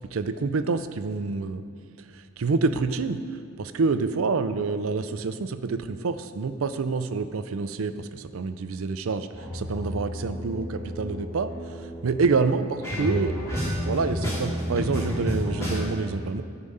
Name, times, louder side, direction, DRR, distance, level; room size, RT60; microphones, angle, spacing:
voice 1, 0.1-1.6 2.1-3.2 3.6-9.3 9.5-11.5 12.0-16.4, right 4 dB, 80° right, 11 dB, 0.5 m, -27 dB
sound 1, 9.3-15.8, equal, 15° left, 2.5 m, -31 dB
13.5 x 5.0 x 5.5 m, 2.3 s
head